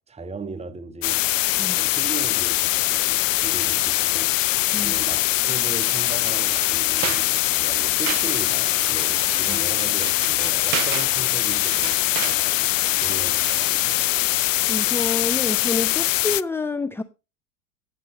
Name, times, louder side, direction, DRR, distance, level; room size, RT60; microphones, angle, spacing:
voice 1, 0.1-1.2 1.6-4.4 4.8-12.7 13.0-14.0, right 4 dB, 15° right, 1.1 m, -37 dB
sound 1, 1.0-16.4, left 17 dB, 70° left, 0.6 m, -22 dB
sound 2, 5.8-13.9, right 15 dB, 75° right, 0.5 m, -35 dB
voice 2, 14.7-17.0, left 3 dB, 5° left, 0.6 m, -28 dB
16.5 x 7.6 x 3.1 m
hypercardioid pair, 80°, 40 cm